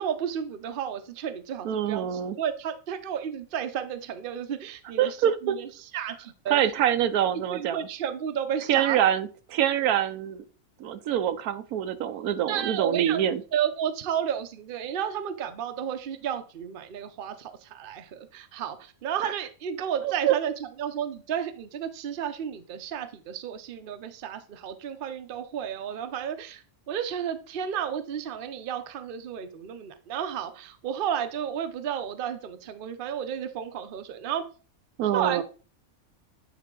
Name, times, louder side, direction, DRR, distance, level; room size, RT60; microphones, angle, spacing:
voice 1, 0.0-5.2 5.4-6.6 7.5-9.0 12.5-13.2 13.5-20.5 20.8-34.5 35.1-35.4, right 9 dB, 50° right, 9 dB, 0.7 m, -32 dB
voice 2, 1.6-2.4 5.0-5.5 6.5-7.9 8.7-10.4 10.8-13.4 19.2-19.3 20.0-20.4 35.0-35.4, right 10 dB, 85° right, 11 dB, 1.2 m, -25 dB
9.2 x 3.6 x 3.7 m, 0.37 s
omnidirectional pair, 1.5 m